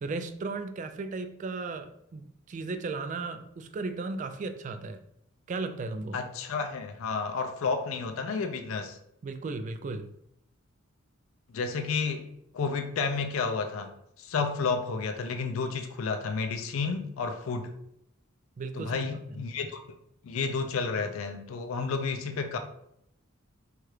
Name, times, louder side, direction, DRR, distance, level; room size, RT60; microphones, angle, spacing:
voice 1, 0.0-5.0 5.5-6.2 9.2-10.1 18.6-19.0, right 3 dB, 40° right, 0.3 m, -35 dB
voice 2, 6.1-9.0 11.5-12.3 12.5-17.7 18.7-19.8 20.2-22.6, left 4 dB, 85° left, 0.4 m, -31 dB
4.6 x 2.4 x 3.1 m
head